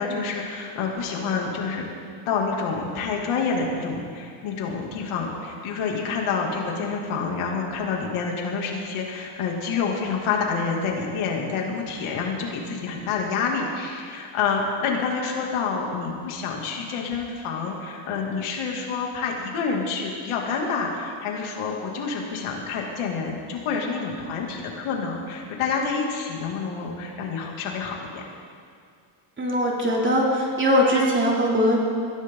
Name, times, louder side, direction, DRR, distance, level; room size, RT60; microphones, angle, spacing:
voice 1, 0.0-1.8 2.3-28.2, left 5 dB, 80° left, 0 dB, 2.8 m, -28 dB
voice 2, 29.4-31.8, equal, 25° right, -3 dB, 3.1 m, -21 dB
21.0 x 15.5 x 3.9 m, 2.3 s
cardioid pair, 150°, 49 cm